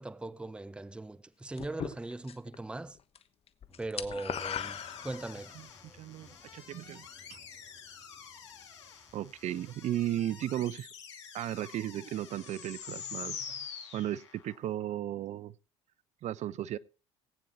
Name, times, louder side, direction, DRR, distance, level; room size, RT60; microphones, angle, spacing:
voice 1, 0.0-3.0 3.8-5.5, right 2 dB, 5° right, 0.6 m, -40 dB
sound 1, 1.6-2.6 2.9-5.6, left 8 dB, 40° left, 1.2 m, -39 dB
sound 2, 3.7-9.9, left 2 dB, 10° left, 6.1 m, -62 dB
sound 3, 4.3-14.6, left 7 dB, 85° left, 2.7 m, -46 dB
voice 2, 5.9-7.4 9.1-10.9 11.3-13.6 13.9-15.5 16.2-16.8, right 12 dB, 50° right, 0.6 m, -35 dB
19.0 x 9.2 x 3.0 m
hypercardioid pair, 75°, 15 cm